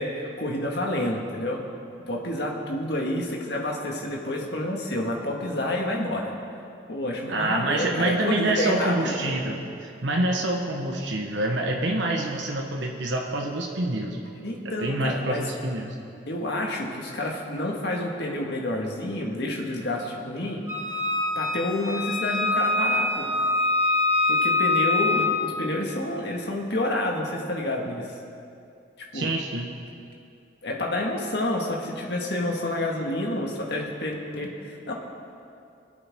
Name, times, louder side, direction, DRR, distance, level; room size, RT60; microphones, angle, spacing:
voice 1, 0.0-1.6 2.1-6.3 6.9-9.3 14.4-15.5 16.3-20.6 21.4-23.3 24.3-28.1 29.0-29.3 30.6-34.9, left 1 dB, 60° left, 0 dB, 1.8 m, -29 dB
voice 2, 7.3-14.2 14.6-15.9 29.1-29.7, right 2 dB, 70° right, 0 dB, 1.1 m, -27 dB
Wind instrument woodwind instrument, 20.7-25.4, left 3 dB, 15° right, 1.9 m, -24 dB
23.5 x 8.6 x 3.7 m, 2.5 s
head